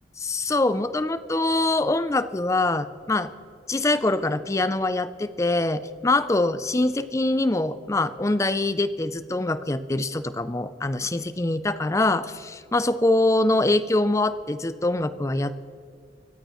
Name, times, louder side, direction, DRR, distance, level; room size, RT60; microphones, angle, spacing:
voice 1, 0.2-3.3 3.7-15.6, left 2 dB, 15° left, 14 dB, 0.5 m, -24 dB
24.0 x 16.0 x 3.1 m, 2.4 s
head